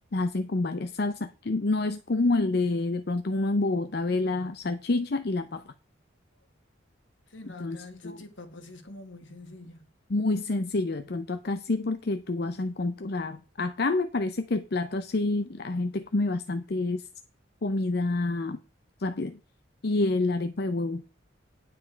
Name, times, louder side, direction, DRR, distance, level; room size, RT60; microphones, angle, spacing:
voice 1, 0.1-5.6 7.4-8.2 10.1-17.0 17.6-18.6 19.0-19.4 19.8-21.0, left 2 dB, 55° left, 0.6 m, -28 dB
voice 2, 7.3-9.8, left 2 dB, 70° left, 1.8 m, -45 dB
9.6 x 7.5 x 4.5 m
head